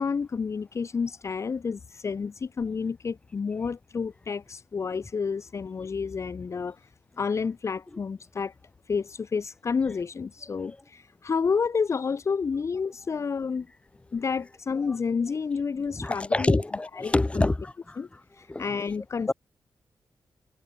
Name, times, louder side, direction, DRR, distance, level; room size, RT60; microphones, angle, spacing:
voice 1, 0.0-6.9 7.2-8.5 8.9-13.7 14.1-16.6 17.0-17.5 18.0-18.1 18.3-19.3, left 5 dB, 40° left, 1.0 m, -30 dB
voice 2, 16.0-18.0 18.5-18.7 19.3-19.4, left 2 dB, 15° left, 2.3 m, -26 dB
wide cardioid pair, 165°, 8 cm